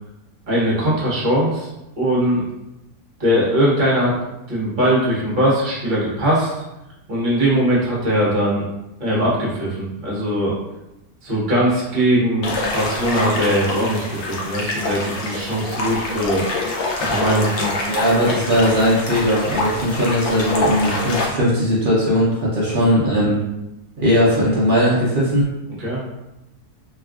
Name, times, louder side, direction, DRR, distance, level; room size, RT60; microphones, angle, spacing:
voice 1, 0.5-1.7 2.0-2.4 3.2-4.1 4.5-6.5 7.1-8.7 9.0-10.6 11.2-16.4 17.1-17.8 18.5-18.6 22.7-22.9 25.8-26.0, right 1 dB, 35° right, -7 dB, 0.9 m, -20 dB
sound 1, 12.4-21.2, left 2 dB, 65° left, 0.7 m, -25 dB
voice 2, 17.9-23.4 24.0-25.5, equal, 55° right, -7 dB, 0.5 m, -18 dB
3.3 x 2.3 x 2.3 m, 0.96 s
omnidirectional pair, 1.6 m